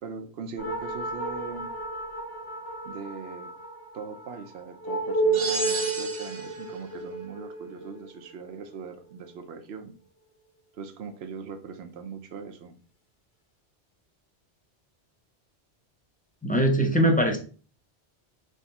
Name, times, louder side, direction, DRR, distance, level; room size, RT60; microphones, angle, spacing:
voice 1, 0.0-1.7 2.8-3.5 3.9-9.9 10.7-12.7, right 5 dB, 70° right, 6 dB, 1.0 m, -40 dB
sound 1, 0.6-9.4, right 3 dB, 65° left, 1.5 m, -32 dB
sound 2, 5.3-6.7, right 3 dB, 30° right, 0.9 m, -32 dB
voice 2, 16.4-17.4, right 1 dB, 10° left, 2 dB, 0.6 m, -21 dB
3.6 x 3.4 x 4.0 m, 0.39 s
omnidirectional pair, 1.1 m